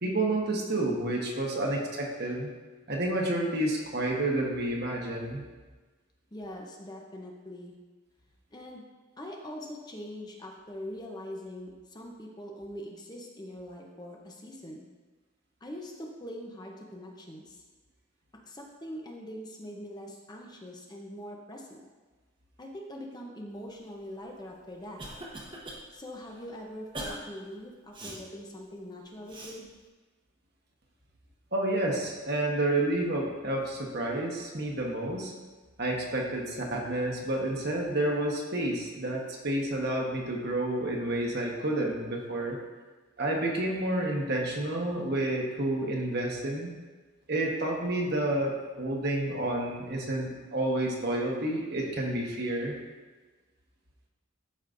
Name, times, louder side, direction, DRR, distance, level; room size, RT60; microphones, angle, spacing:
voice 1, 0.0-2.5 2.9-5.4 31.5-35.3 35.8-42.6 43.2-46.7 47.3-52.7, right 1 dB, 50° right, -1 dB, 1.2 m, -30 dB
voice 2, 6.3-7.7 8.5-8.8 9.2-14.9 15.6-17.6 18.4-21.8 22.6-25.0 25.9-29.7, equal, 20° left, 0 dB, 0.7 m, -43 dB
Cough, 24.4-25.8 26.2-26.4 26.9-27.2 27.9-28.2 29.3-29.6, right 1 dB, 25° right, 1.0 m, -40 dB
12.5 x 5.0 x 2.6 m, 1.3 s
head